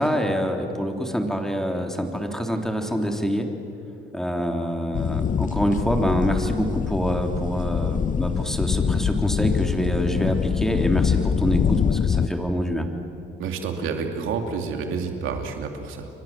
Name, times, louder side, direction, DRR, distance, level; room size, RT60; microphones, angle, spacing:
voice 1, 0.0-3.5 4.1-12.9, equal, ahead, 4 dB, 3.2 m, -25 dB
sound 1, 4.9-12.3, left 7 dB, 40° left, 0.8 m, -24 dB
voice 2, 13.4-16.1, right 5 dB, 90° right, 4 dB, 2.9 m, -29 dB
29.5 x 24.0 x 7.4 m, 2.8 s
cardioid pair, 90°, 20 cm